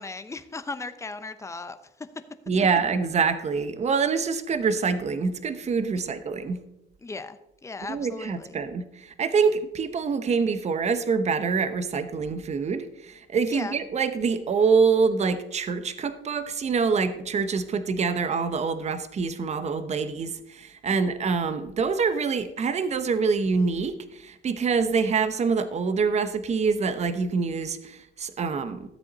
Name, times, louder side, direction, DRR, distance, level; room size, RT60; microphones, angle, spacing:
voice 1, 0.0-2.1 6.1-6.2 7.0-7.4 7.6-8.5 13.5-13.8 21.0-21.1, left 3 dB, 15° left, 11 dB, 0.7 m, -37 dB
voice 2, 2.5-6.6 7.9-28.9, right 5 dB, 35° right, 11 dB, 0.9 m, -25 dB
13.5 x 8.0 x 4.0 m, 0.85 s
cardioid pair, 115°, 20 cm